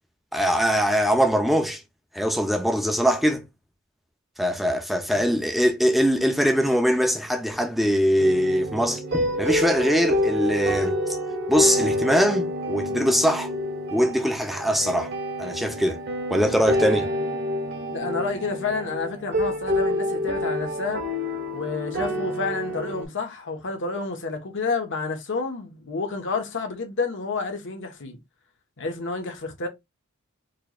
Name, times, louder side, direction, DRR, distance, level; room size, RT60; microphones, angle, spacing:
voice 1, 0.3-1.8 2.1-3.4 4.4-11.2 11.5-13.5 13.9-15.1 15.4-16.0 16.3-17.1, equal, ahead, 0.6 m, -22 dB
sound 1, 8.2-23.0, left 1 dB, 50° right, 1.2 m, -27 dB
voice 2, 17.9-21.0 21.5-28.2 28.8-29.7, left 4 dB, 60° left, 1.2 m, -30 dB
4.5 x 3.2 x 2.4 m
head